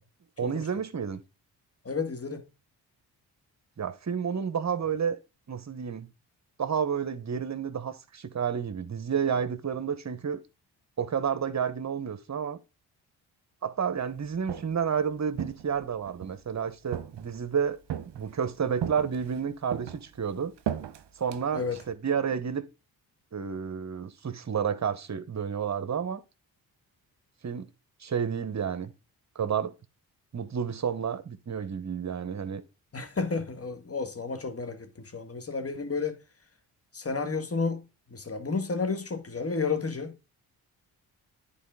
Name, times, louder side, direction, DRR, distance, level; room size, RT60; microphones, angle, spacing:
voice 1, 0.4-1.2 3.8-5.2 5.5-6.1 6.6-10.4 11.0-12.6 13.6-17.8 18.1-20.5 21.2-22.6 23.3-26.2 27.4-27.7 28.0-28.9 29.3-29.7 30.3-32.6, right 7 dB, 35° right, 1.1 m, -30 dB
voice 2, 1.8-2.4 21.5-21.8 32.9-36.2 36.9-40.2, left 4 dB, 30° left, 1.7 m, -32 dB
Walk footsteps, 14.2-14.9 15.4-16.4 16.9-17.5 17.9-18.4 18.8-19.4 19.7-21.9, right 9 dB, 60° right, 0.9 m, -36 dB
10.0 x 4.2 x 3.7 m
hypercardioid pair, 45°, 47 cm